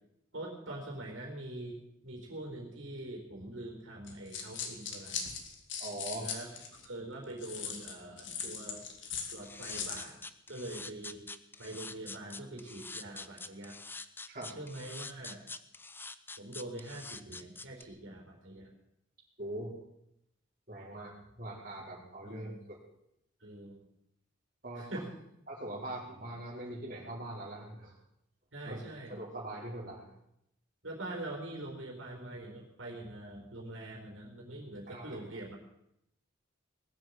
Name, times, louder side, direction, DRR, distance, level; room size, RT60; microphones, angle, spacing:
voice 1, 0.3-5.2 6.2-6.5 6.8-8.9 9.3-10.2 10.5-11.2 11.6-13.8 14.5-15.4 16.4-18.7 22.2-22.6 23.4-23.9 24.7-25.1 28.5-29.2 30.8-35.6, right 1 dB, 70° right, 0 dB, 4.3 m, -44 dB
sound 1, 4.1-6.9 7.4-10.1, left 6 dB, 65° left, 2.6 m, -39 dB
voice 2, 5.8-6.3 14.3-14.5 19.4-19.7 20.7-22.8 24.6-24.9 25.5-27.9 28.7-28.8 29.1-30.1 34.9-35.1, right 1 dB, 40° right, -4 dB, 4.7 m, -42 dB
sound 2, 9.4-17.8, left 3 dB, 10° left, 0.6 m, -45 dB
19.5 x 7.8 x 9.4 m, 0.79 s
head